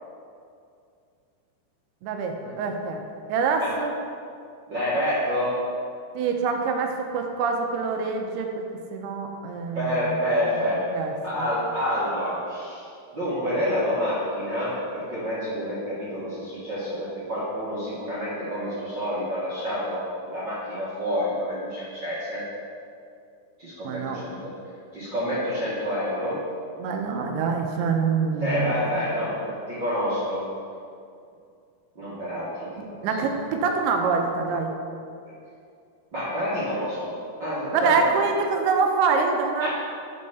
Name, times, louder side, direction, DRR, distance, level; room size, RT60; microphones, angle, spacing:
voice 1, 2.0-3.0 3.3-3.9 6.1-8.5 8.9-10.2 10.5-11.5 23.8-24.2 26.8-28.7 32.8-34.7 37.7-39.7, right 5 dB, 80° right, 3 dB, 2.7 m, -25 dB
voice 2, 4.7-5.6 9.7-10.9 11.2-12.9 13.1-20.0 20.3-22.4 23.6-24.5 24.9-26.4 28.4-30.4 31.9-33.0 36.1-37.1 37.4-38.0 39.6-39.7, equal, 50° right, -11 dB, 1.3 m, -28 dB
8.4 x 4.4 x 6.8 m, 2.4 s
omnidirectional pair, 4.7 m